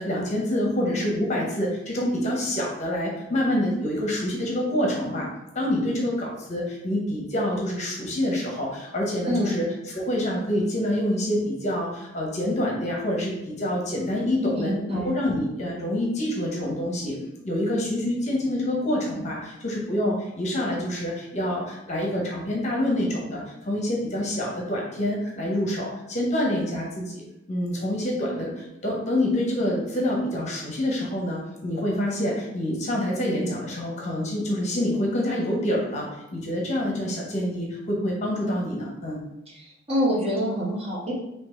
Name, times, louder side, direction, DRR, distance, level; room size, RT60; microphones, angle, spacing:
voice 1, 0.0-5.3 5.5-17.2 17.4-27.2 27.5-39.2, left 1 dB, 35° left, -2 dB, 0.9 m, -27 dB
voice 2, 14.5-15.1 39.5-41.1, equal, 30° right, -6 dB, 1.2 m, -26 dB
4.0 x 2.8 x 4.5 m, 0.88 s
head